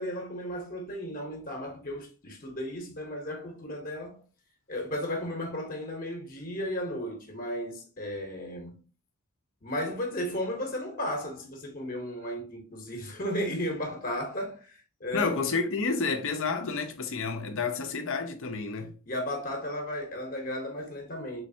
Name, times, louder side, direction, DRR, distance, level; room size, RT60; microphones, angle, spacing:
voice 1, 0.0-4.2 4.7-8.8 9.6-15.4 19.1-21.4, left 1 dB, 40° left, 1.0 m, -34 dB
voice 2, 15.1-18.9, left 4 dB, 60° left, 0.6 m, -30 dB
3.8 x 3.2 x 2.7 m
head